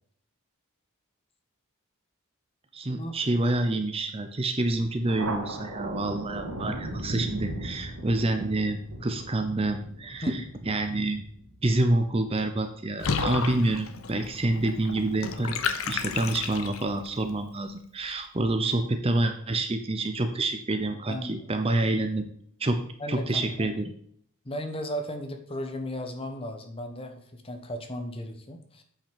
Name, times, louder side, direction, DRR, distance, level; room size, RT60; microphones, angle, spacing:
voice 1, 2.7-11.2 11.6-15.6 15.9-22.2 22.6-22.8 23.1-23.8, right 2 dB, 25° right, 7 dB, 0.7 m, -27 dB
Thunder, 5.1-12.1, right 1 dB, 80° right, 1.9 m, -37 dB
Water / Bathtub (filling or washing), 13.0-17.1, left 5 dB, 70° left, 0.8 m, -32 dB
voice 2, 21.1-21.5 23.0-23.7 24.4-28.8, equal, 25° left, 5 dB, 1.1 m, -36 dB
8.7 x 5.7 x 5.2 m, 0.64 s
head